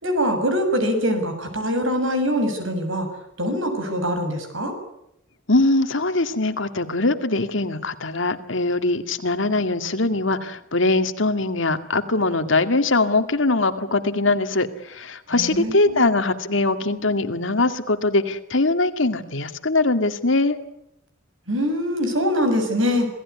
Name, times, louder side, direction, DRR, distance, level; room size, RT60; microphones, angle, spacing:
voice 1, 0.0-3.1 3.4-4.7 15.3-16.1 21.5-23.1, equal, 80° right, 6 dB, 7.2 m, -23 dB
voice 2, 5.5-20.6, left 2 dB, 70° left, 8 dB, 2.1 m, -22 dB
27.5 x 18.0 x 9.7 m, 0.80 s
head